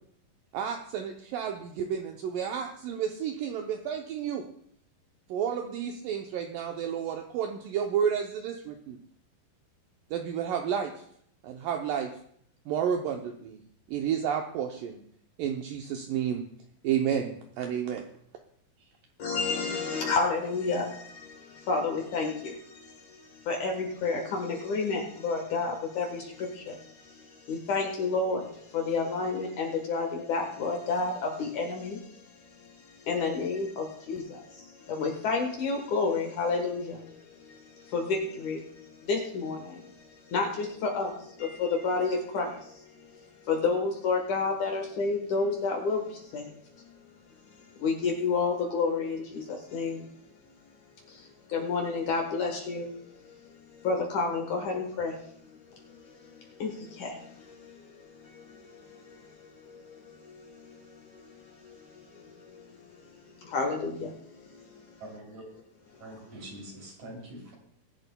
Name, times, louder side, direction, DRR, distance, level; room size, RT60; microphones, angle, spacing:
voice 1, 0.5-4.5 5.3-9.0 10.1-10.9 11.4-12.1 12.7-13.6 13.9-15.0 15.4-16.5 16.8-18.0, right 8 dB, 75° right, 3 dB, 2.1 m, -31 dB
voice 2, 19.2-32.2 32.6-32.7 33.0-40.0 40.3-42.8 43.4-46.5 47.8-50.1 51.1-52.9 53.2-53.4 53.7-55.2 56.3-62.7 63.4-64.8, left 4 dB, 60° left, 1 dB, 2.4 m, -31 dB
voice 3, 65.0-65.4 66.0-67.5, right 1 dB, 50° right, -1 dB, 4.0 m, -44 dB
21.5 x 11.0 x 2.2 m, 0.66 s
omnidirectional pair, 4.4 m